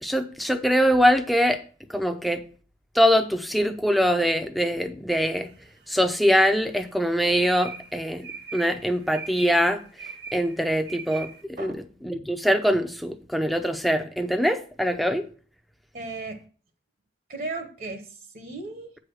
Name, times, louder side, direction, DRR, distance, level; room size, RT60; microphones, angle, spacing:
voice 1, 0.0-1.6 1.9-2.4 2.9-5.5 5.9-8.3 8.5-9.8 10.3-11.3 11.6-11.7 12.0-15.2, equal, ahead, 0.7 m, -23 dB
sound 1, 5.4-6.2 6.6-11.4, right 5 dB, 70° right, 1.8 m, -41 dB
voice 2, 15.9-16.4 17.3-18.9, right 3 dB, 50° right, 1.1 m, -36 dB
8.5 x 4.9 x 6.2 m
head